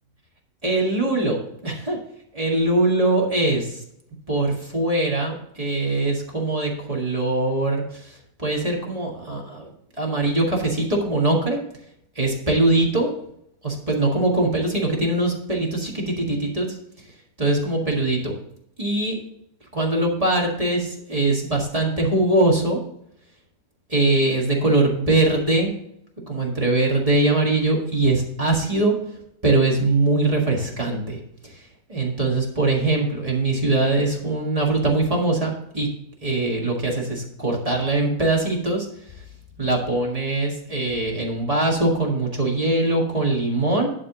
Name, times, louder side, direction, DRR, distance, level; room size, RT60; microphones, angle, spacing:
voice 1, 0.6-2.0 2.3-3.8 4.3-9.7 10.0-11.6 12.2-13.1 13.6-16.8 17.4-18.3 18.8-19.2 19.7-22.8 23.9-25.7 26.3-28.9 29.4-35.9 36.2-39.2 39.6-43.9, right 2 dB, 25° right, -2 dB, 1.8 m, -22 dB
11.0 x 3.7 x 6.7 m, 0.75 s
omnidirectional pair, 1.6 m